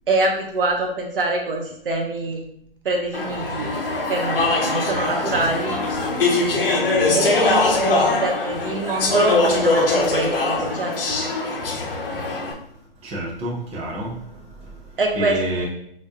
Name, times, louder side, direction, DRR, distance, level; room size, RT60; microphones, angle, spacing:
voice 1, 0.1-2.4 2.8-3.7 4.0-5.8 7.1-11.2 15.0-15.4, right 2 dB, 65° right, 2 dB, 0.9 m, -25 dB
Speech / Chatter, 3.1-12.5, left 2 dB, 65° left, 1.0 m, -22 dB
voice 2, 13.0-15.7, right 1 dB, 20° right, -4 dB, 1.1 m, -29 dB
6.2 x 3.1 x 2.5 m, 0.71 s
figure-of-eight pair, 130°, 29 cm